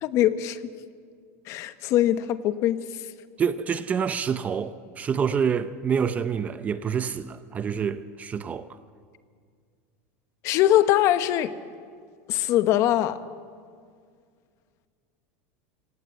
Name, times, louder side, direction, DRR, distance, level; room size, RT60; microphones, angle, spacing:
voice 1, 0.0-0.6 1.5-2.8 10.4-11.5 12.3-13.2, left 13 dB, 40° left, 1.0 m, -22 dB
voice 2, 3.4-8.7, right 7 dB, 20° right, 0.6 m, -27 dB
25.0 x 17.5 x 8.2 m
supercardioid pair, 160°, 8 cm